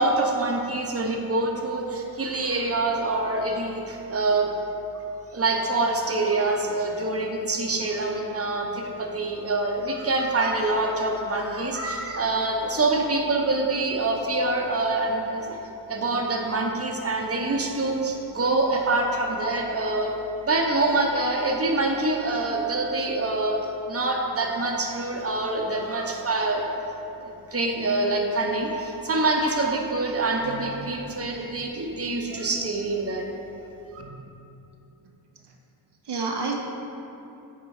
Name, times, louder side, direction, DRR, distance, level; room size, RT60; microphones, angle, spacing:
voice 1, 0.0-4.5 4.9-5.0 5.3-20.1 20.4-23.6 23.9-26.7 27.2-33.3 33.9-34.0, right 2 dB, 35° right, 1 dB, 0.9 m, -25 dB
voice 2, 30.4-30.9 34.0-34.2 36.1-36.5, right 4 dB, 75° right, 1 dB, 0.7 m, -31 dB
8.6 x 3.8 x 4.9 m, 2.8 s
wide cardioid pair, 60°, 41 cm